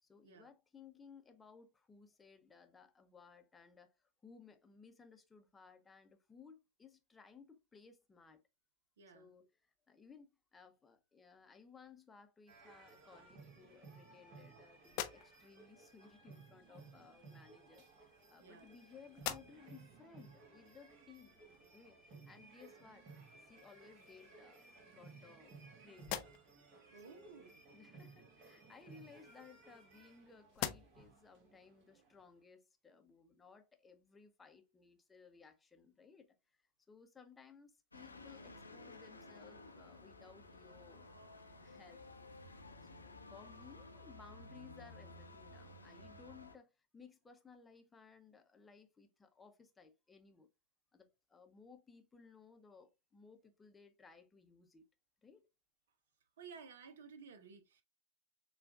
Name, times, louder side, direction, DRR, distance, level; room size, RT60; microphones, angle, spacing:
voice 1, 0.0-8.4 9.1-21.4 21.7-23.1 23.4-25.5 25.8-26.2 26.6-26.7 27.1-36.3 36.9-41.1 41.6-42.0 42.9-50.5 50.9-54.9 55.2-55.5, left 5 dB, 15° left, 0.8 m, -60 dB
voice 2, 9.0-9.3 18.4-18.7 26.9-27.5 56.4-57.8, right 5 dB, 60° right, 0.8 m, -55 dB
sound 1, 12.5-32.2, right 4 dB, 45° right, 1.6 m, -59 dB
sound 2, 14.8-15.7 16.8-17.0 17.9-18.8 19.1-19.8 20.3-20.4 23.1-23.2 23.7-24.3 24.9-25.6 26.0-26.7 28.7-30.1 30.5-31.2, left 12 dB, 45° left, 0.6 m, -46 dB
sound 3, 37.9-46.6, left 2 dB, 80° left, 0.7 m, -55 dB
6.7 x 2.4 x 2.4 m
figure-of-eight pair, 90°, 0 cm